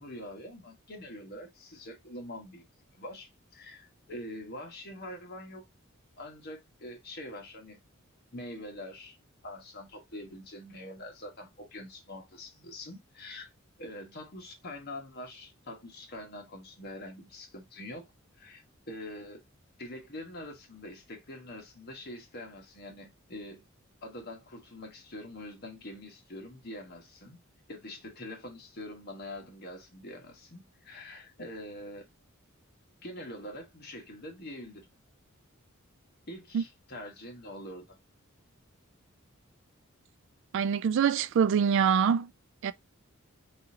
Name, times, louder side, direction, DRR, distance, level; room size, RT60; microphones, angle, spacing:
voice 1, 0.0-2.6 2.9-5.6 6.2-7.8 8.3-9.2 9.4-13.5 13.8-18.1 18.3-19.4 19.8-23.7 24.0-27.4 27.7-32.0 33.0-34.9 36.3-38.0, left 1 dB, 50° left, 1.4 m, -44 dB
voice 2, 40.5-42.3 42.6-42.7, right 7 dB, 60° right, 0.3 m, -24 dB
4.0 x 3.8 x 2.7 m
head